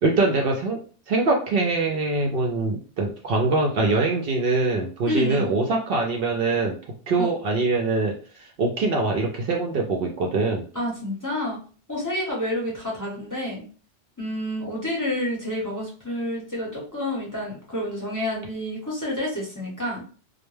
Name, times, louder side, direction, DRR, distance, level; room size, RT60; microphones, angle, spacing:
voice 1, 0.0-0.8 1.1-6.8 7.1-10.7, right 3 dB, 65° right, 1 dB, 0.7 m, -23 dB
voice 2, 5.1-5.5 7.2-7.3 10.7-11.6 11.9-13.6 14.2-20.0, left 1 dB, 20° left, -5 dB, 0.7 m, -29 dB
2.2 x 2.1 x 3.1 m, 0.39 s
omnidirectional pair, 1.1 m